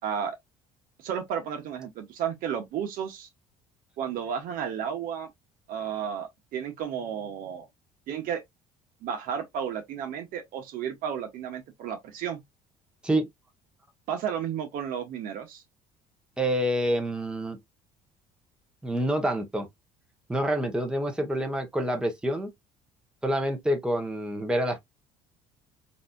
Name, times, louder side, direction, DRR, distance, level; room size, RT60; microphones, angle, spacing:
voice 1, 0.0-0.4 1.0-3.3 4.0-5.3 5.7-7.6 8.1-8.4 9.0-12.4 14.1-15.6, right 8 dB, 65° right, 1.0 m, -32 dB
voice 2, 16.4-17.6 18.8-19.7 20.3-22.5 23.2-24.8, right 1 dB, 5° right, 0.9 m, -27 dB
4.0 x 2.6 x 2.3 m
supercardioid pair, 90°, 16 cm